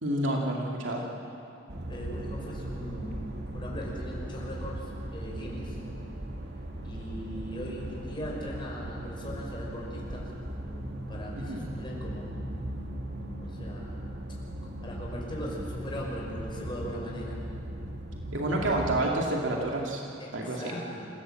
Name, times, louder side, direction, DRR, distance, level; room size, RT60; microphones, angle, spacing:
voice 1, 0.0-1.1 11.4-11.6 18.3-20.0 20.3-20.6, right 1 dB, 80° right, -1 dB, 2.4 m, -29 dB
sound 1, 1.7-19.0, right 1 dB, 60° right, 2.0 m, -38 dB
voice 2, 1.9-3.2 3.5-5.8 6.8-10.3 11.1-12.4 13.4-14.0 14.8-17.4 20.2-21.1, equal, 25° left, -3 dB, 5.6 m, -39 dB
27.0 x 16.5 x 7.7 m, 2.7 s
head